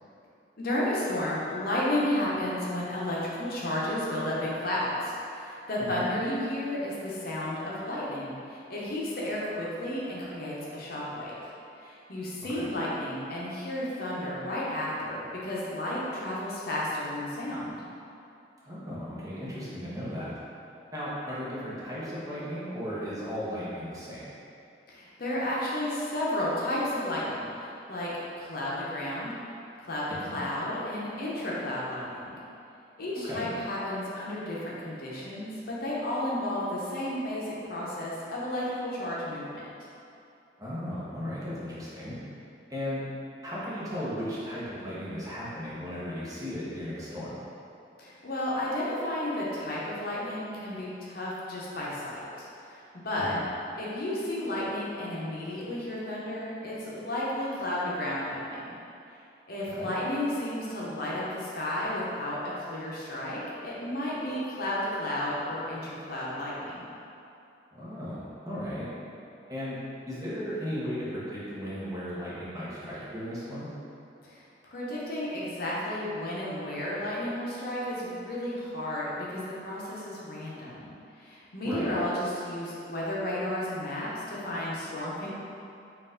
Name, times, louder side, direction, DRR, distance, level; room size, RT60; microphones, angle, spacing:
voice 1, 0.6-11.3 11.8-17.8 24.9-29.3 29.9-32.3 33.0-39.6 48.0-53.4 53.8-58.7 59.5-66.8 74.2-85.3, left 1 dB, 55° left, -6 dB, 0.8 m, -32 dB
voice 2, 18.6-20.3 20.9-24.3 30.1-30.4 33.2-33.5 40.6-42.2 42.7-43.0 43.4-47.4 53.2-53.4 59.7-59.9 67.7-68.9 69.5-73.7 81.6-81.9, equal, 20° right, -9 dB, 0.9 m, -36 dB
4.4 x 2.5 x 3.8 m, 2.7 s
head